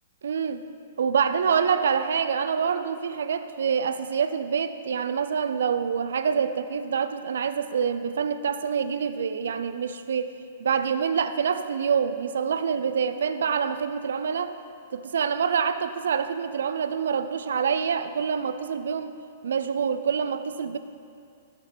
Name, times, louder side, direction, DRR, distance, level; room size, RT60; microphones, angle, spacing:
voice 1, 0.2-0.6 1.0-10.3 10.6-14.5 14.9-19.1 19.4-20.8, right 6 dB, 80° right, 11 dB, 0.3 m, -26 dB
5.7 x 5.5 x 3.6 m, 2.3 s
hypercardioid pair, 140°, 0 cm